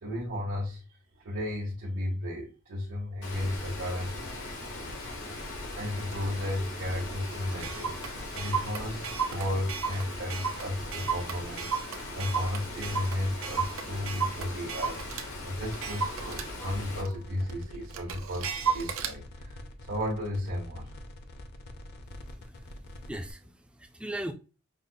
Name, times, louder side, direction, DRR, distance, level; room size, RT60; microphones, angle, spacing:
voice 1, 0.0-4.3 5.8-21.0, left 1 dB, 70° right, 0.9 m, -34 dB
Water, 3.2-17.0, left 2 dB, 85° left, 1.1 m, -41 dB
sound 1, 3.3-23.3, left 1 dB, 50° left, 0.6 m, -45 dB
Clock, 4.7-4.8 5.3-5.5 6.1-6.2 6.5-6.6 6.9-7.0 7.3-15.3 15.7-19.2, right 6 dB, 90° right, 0.5 m, -34 dB
voice 2, 22.0-24.3, right 1 dB, 5° right, 0.3 m, -40 dB
5.2 x 2.0 x 2.6 m
head